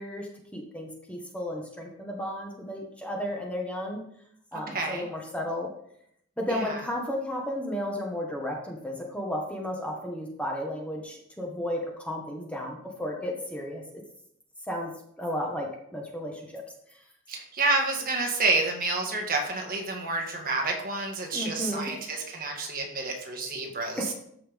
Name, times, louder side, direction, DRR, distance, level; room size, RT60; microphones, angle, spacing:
voice 1, 0.0-4.0 4.5-5.7 6.4-14.0 14.7-14.9 15.2-16.6 16.9-17.0 21.3-21.9 24.0-24.1, left 1 dB, 5° left, 0 dB, 1.4 m, -33 dB
voice 2, 4.7-5.1 6.5-6.8 17.3-24.1, right 3 dB, 45° right, 2 dB, 1.7 m, -29 dB
13.5 x 5.6 x 3.6 m, 0.71 s
head